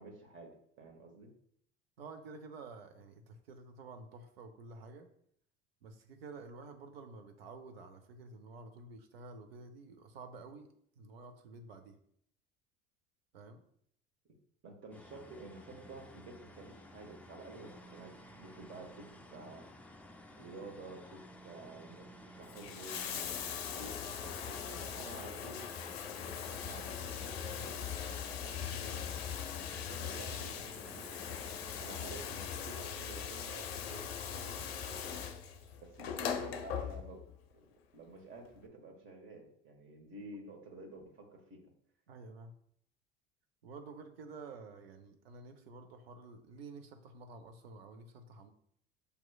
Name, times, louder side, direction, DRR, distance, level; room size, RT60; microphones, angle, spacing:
voice 1, 0.0-1.3 14.6-19.7 20.4-25.7 26.6-29.1 29.7-31.5 31.8-35.2 35.8-37.2 37.5-37.6 37.9-41.7, right 2 dB, 40° right, 1 dB, 1.3 m, -51 dB
voice 2, 2.0-5.1 5.8-10.7 11.0-12.0 13.3-13.6 42.1-42.5 43.6-48.5, right 3 dB, 80° right, 7 dB, 0.7 m, -50 dB
sound 1, 14.9-32.5, left 1 dB, 5° left, 0.4 m, -55 dB
Bathtub (filling or washing), 22.4-37.3 38.5-38.6, left 8 dB, 85° left, 0.5 m, -40 dB
6.7 x 3.0 x 2.3 m, 0.68 s
hypercardioid pair, 75°, 30 cm